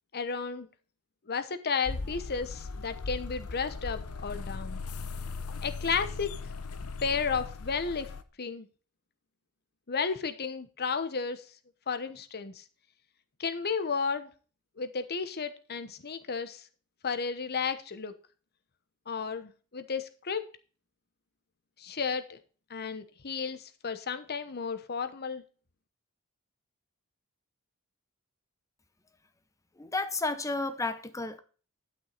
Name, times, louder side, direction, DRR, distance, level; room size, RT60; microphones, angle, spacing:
voice 1, 0.1-0.7 1.3-4.8 5.6-6.4 7.0-8.1 8.4-8.7 9.9-11.4 11.9-12.6 13.4-14.3 14.8-16.6 17.0-18.1 19.1-20.4 21.8-22.4 22.7-25.4, left 5 dB, 50° left, 1.0 m, -33 dB
sound 1, 1.8-8.2, left 4 dB, 90° left, 0.9 m, -38 dB
voice 2, 29.8-31.4, left 3 dB, 15° left, 0.8 m, -32 dB
11.5 x 6.2 x 4.0 m
head